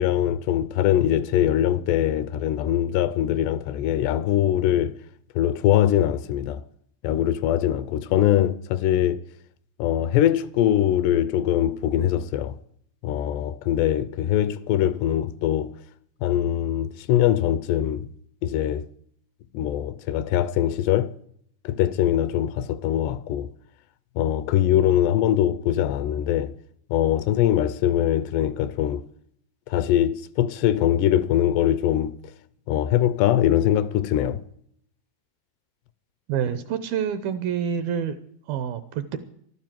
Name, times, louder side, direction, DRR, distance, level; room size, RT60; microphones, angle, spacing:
voice 1, 0.0-5.0 5.4-6.6 7.0-9.2 9.8-12.6 13.0-15.7 16.2-18.1 18.4-18.9 19.5-21.1 21.6-23.5 24.2-26.6 26.9-29.1 29.7-32.1 32.7-34.4, left 11 dB, 80° left, 2.7 m, -22 dB
voice 2, 36.3-38.2 38.5-39.2, right 8 dB, 75° right, 2.3 m, -27 dB
12.5 x 12.0 x 7.5 m
omnidirectional pair, 5.0 m